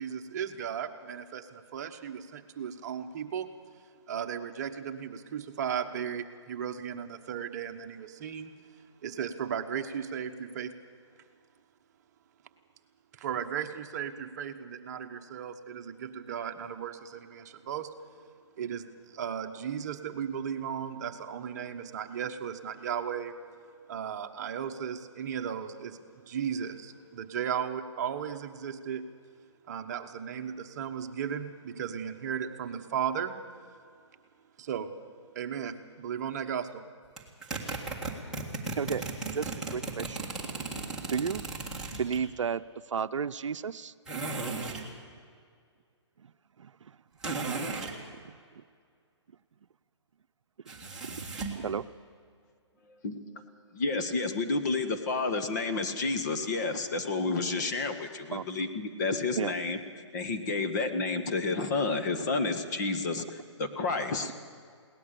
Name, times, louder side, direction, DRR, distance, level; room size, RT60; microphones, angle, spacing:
voice 1, 0.0-3.5 4.1-8.5 9.0-10.7 13.2-17.9 18.6-23.3 23.9-26.0 26.3-29.0 29.7-33.4 34.6-34.9 35.3-36.8, right 8 dB, 35° right, 6 dB, 1.1 m, -35 dB
sound 1, 37.2-42.2 44.1-44.9 47.2-48.0 50.7-51.6, right 3 dB, 5° right, 1.8 m, -36 dB
voice 2, 39.3-40.2 41.0-41.5 41.9-42.6 42.9-43.9 46.2-46.3 46.6-46.9 47.5-48.2 51.0-51.9 58.3-58.5 59.4-59.5 64.2-64.3, right 6 dB, 85° right, 12 dB, 0.6 m, -33 dB
voice 3, 53.7-59.8 60.1-64.3, left 3 dB, 35° left, 9 dB, 1.5 m, -30 dB
21.5 x 18.0 x 6.8 m, 2.2 s
hypercardioid pair, 160°, 15 cm